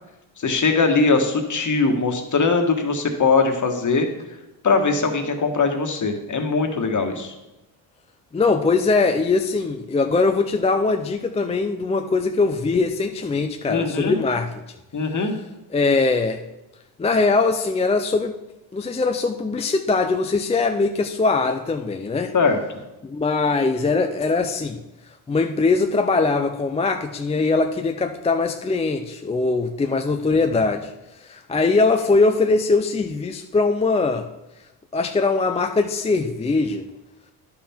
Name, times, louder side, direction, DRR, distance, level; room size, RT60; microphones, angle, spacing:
voice 1, 0.4-4.1 4.6-7.3 13.7-14.1 14.9-15.3 22.3-22.6, left 4 dB, 35° left, 4 dB, 1.4 m, -21 dB
voice 2, 8.3-14.6 15.7-16.4 17.0-18.3 18.7-22.3 23.0-24.8 25.3-30.9 31.2-34.3 34.9-36.9, left 3 dB, 15° left, 6 dB, 0.3 m, -21 dB
10.0 x 5.8 x 4.3 m, 0.99 s
cardioid pair, 80°, 49 cm